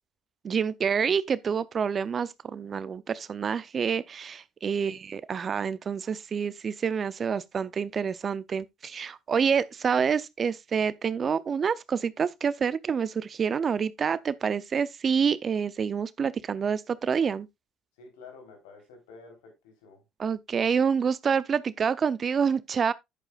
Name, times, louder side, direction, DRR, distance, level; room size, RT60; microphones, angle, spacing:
voice 1, 0.4-17.5 20.2-22.9, right 6 dB, 40° right, 0.5 m, -27 dB
voice 2, 18.0-20.0, left 4 dB, 80° left, 3.6 m, -50 dB
9.9 x 8.7 x 2.4 m
hypercardioid pair, 65°, 0 cm